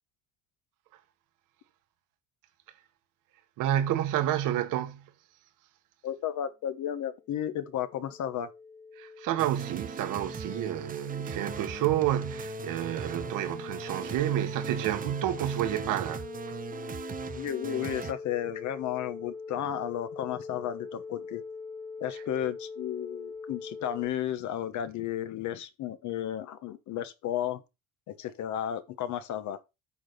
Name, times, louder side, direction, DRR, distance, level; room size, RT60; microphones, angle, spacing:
voice 1, 3.6-5.0 9.0-16.6, right 12 dB, 80° right, 1.5 m, -30 dB
voice 2, 6.0-8.5 17.4-21.4 22.0-27.6 28.1-29.6, left 10 dB, 65° left, 1.2 m, -33 dB
sound 1, 7.1-24.1, left 4 dB, 10° left, 0.5 m, -42 dB
sound 2, 9.4-18.1, right 7 dB, 25° right, 0.7 m, -39 dB
8.6 x 4.3 x 6.8 m
cardioid pair, 120°, 32 cm